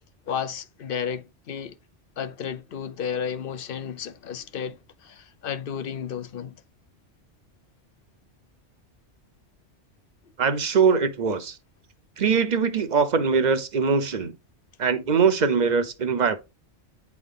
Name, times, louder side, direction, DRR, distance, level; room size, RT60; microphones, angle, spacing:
voice 1, 0.3-1.8 2.2-6.6, left 7 dB, 55° left, 0.8 m, -32 dB
voice 2, 10.4-11.6 12.2-14.3 14.8-16.4, right 5 dB, 45° right, 0.8 m, -22 dB
9.2 x 3.6 x 3.7 m
omnidirectional pair, 1.2 m